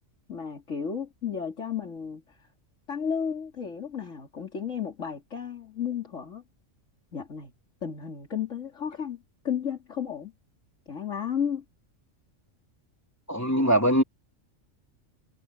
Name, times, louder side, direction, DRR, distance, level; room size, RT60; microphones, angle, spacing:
voice 1, 0.3-2.5 2.9-6.4 7.1-7.5 7.8-10.3 10.9-11.6, left 7 dB, 75° left, 2.9 m, -33 dB
voice 2, 13.3-14.0, equal, 10° left, 3.3 m, -22 dB
omnidirectional pair, 1.3 m